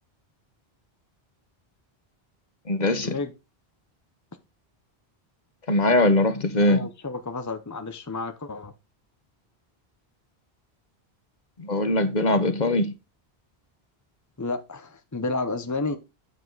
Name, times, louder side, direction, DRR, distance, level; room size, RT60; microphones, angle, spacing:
voice 1, 2.7-3.2 5.7-6.9 11.6-12.9, left 2 dB, 45° left, 1.2 m, -21 dB
voice 2, 6.5-8.7 14.4-16.0, left 3 dB, 20° left, 0.7 m, -31 dB
8.4 x 7.4 x 4.0 m
omnidirectional pair, 1.1 m